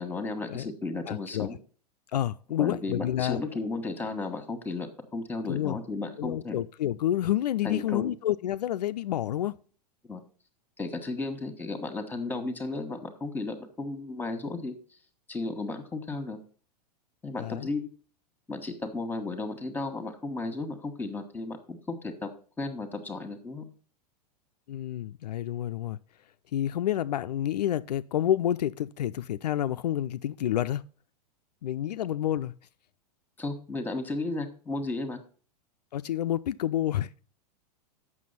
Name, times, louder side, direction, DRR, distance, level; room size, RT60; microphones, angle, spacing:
voice 1, 0.0-1.6 2.6-6.6 7.6-8.1 10.1-10.2 10.8-14.7 15.3-16.4 17.2-17.9 18.5-22.3 22.6-23.7 33.4-35.2, left 3 dB, 10° left, 1.4 m, -34 dB
voice 2, 1.1-1.5 2.1-3.4 5.5-5.8 6.2-9.5 17.4-17.7 24.7-26.0 26.5-30.8 31.6-32.5 35.9-37.1, left 12 dB, 75° left, 0.4 m, -29 dB
7.6 x 6.2 x 5.6 m
hypercardioid pair, 100°, 21 cm